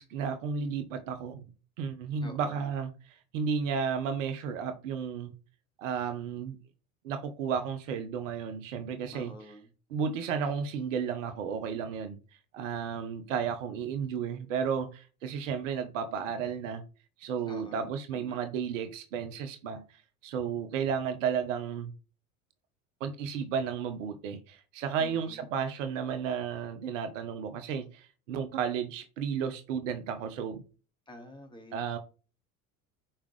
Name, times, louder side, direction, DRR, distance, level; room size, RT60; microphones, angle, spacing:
voice 1, 0.0-1.5 1.8-5.3 5.8-6.6 7.0-9.3 9.9-12.2 12.5-16.8 17.2-21.9 23.0-30.6 31.7-32.0, right 7 dB, 60° right, 1.1 m, -33 dB
voice 2, 2.2-2.7 9.1-9.7 17.5-18.4 25.0-25.5 31.1-31.8, equal, 10° left, 1.9 m, -48 dB
5.8 x 4.9 x 3.3 m
figure-of-eight pair, 70°, 43 cm